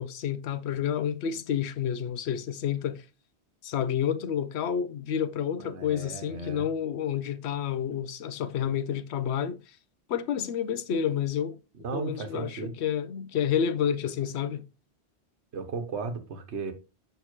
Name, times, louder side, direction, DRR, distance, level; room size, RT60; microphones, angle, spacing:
voice 1, 0.0-3.0 3.6-9.6 10.1-11.6 11.9-14.6, left 8 dB, 80° left, 0.9 m, -29 dB
voice 2, 5.6-6.7 11.8-12.7 15.5-16.7, right 4 dB, 85° right, 1.2 m, -35 dB
6.8 x 5.6 x 3.0 m
omnidirectional pair, 1.1 m